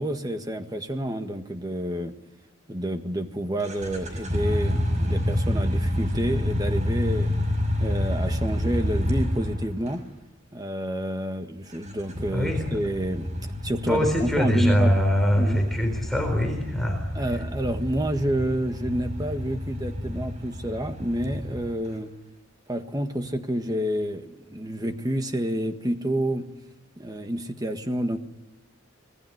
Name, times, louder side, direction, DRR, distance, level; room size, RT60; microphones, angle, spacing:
voice 1, 0.0-2.1 2.7-7.4 7.8-10.0 10.5-13.3 13.6-14.9 15.4-15.6 17.1-22.1 22.7-26.5 27.0-28.2, right 1 dB, 20° right, 7 dB, 1.6 m, -29 dB
sound 1, 3.6-10.0 11.7-21.8, left 1 dB, 35° right, 5.6 m, -28 dB
voice 2, 12.3-12.8 13.9-17.0 17.3-17.4, equal, ahead, 3 dB, 4.0 m, -23 dB
26.0 x 19.0 x 9.4 m, 1.0 s
head